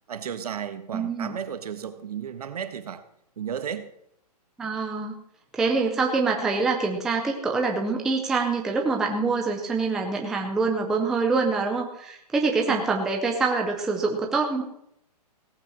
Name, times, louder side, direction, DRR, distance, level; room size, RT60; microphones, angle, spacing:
voice 1, 0.1-3.0 3.4-3.9 12.7-12.8, right 8 dB, 65° right, 10 dB, 1.6 m, -34 dB
voice 2, 0.9-1.3 4.6-5.2 5.5-14.6, right 4 dB, ahead, 1 dB, 0.5 m, -25 dB
17.0 x 8.1 x 6.2 m, 0.73 s
hypercardioid pair, 170°, 21 cm